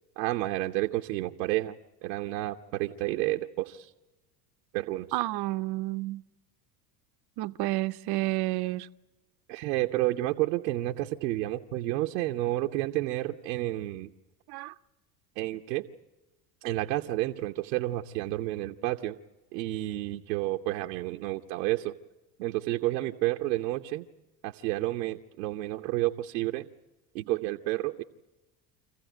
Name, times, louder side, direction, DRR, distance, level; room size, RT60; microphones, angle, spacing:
voice 1, 0.2-1.8 2.0-3.9 4.7-5.1 9.5-14.1 15.4-15.9 16.6-19.2 19.5-21.9 22.4-24.0 24.4-26.7 27.1-28.0, right 17 dB, 80° right, 0.9 m, -30 dB
voice 2, 5.1-6.2 7.4-8.9 14.5-14.7, right 19 dB, 50° right, 0.8 m, -30 dB
26.0 x 15.0 x 9.2 m
hypercardioid pair, 85°, 49 cm